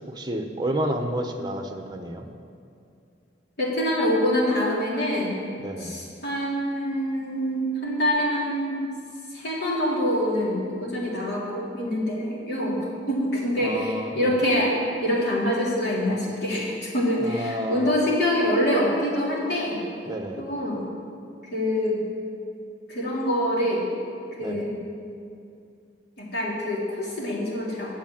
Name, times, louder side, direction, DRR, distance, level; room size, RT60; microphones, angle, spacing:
voice 1, 0.0-2.3 5.6-6.0 13.6-14.4 17.2-18.0 20.1-20.4 24.4-24.7, right 1 dB, 25° right, 4 dB, 0.9 m, -30 dB
voice 2, 3.6-5.5 5.8-8.8 9.3-14.7 15.0-19.8 20.4-20.9 21.5-22.0 22.9-23.9 24.4-24.8 26.2-27.9, equal, 65° left, -6 dB, 3.2 m, -25 dB
10.0 x 7.4 x 7.3 m, 2.4 s
head